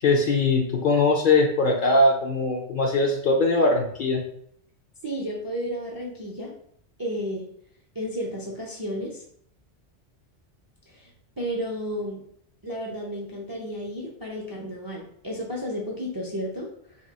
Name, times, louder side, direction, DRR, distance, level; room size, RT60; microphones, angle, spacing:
voice 1, 0.0-4.2, left 2 dB, 60° left, 1 dB, 0.6 m, -21 dB
voice 2, 5.0-6.5 7.0-7.5 7.9-9.2 10.9-11.1 11.4-12.2 12.6-17.0, equal, 30° right, -2 dB, 0.4 m, -32 dB
2.9 x 2.6 x 3.9 m, 0.67 s
omnidirectional pair, 1.2 m